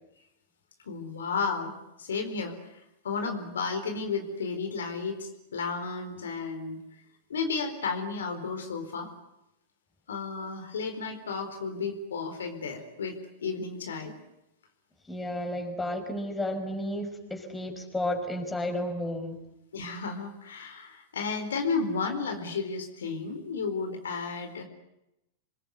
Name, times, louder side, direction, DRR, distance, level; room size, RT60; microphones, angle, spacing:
voice 1, 0.9-6.8 7.3-9.1 10.1-13.2 13.4-14.1 19.7-24.6, left 4 dB, 80° left, 5 dB, 4.4 m, -33 dB
voice 2, 15.1-19.4, left 1 dB, 10° left, 4 dB, 5.8 m, -32 dB
26.5 x 21.5 x 9.6 m, 0.88 s
hypercardioid pair, 105°, 0 cm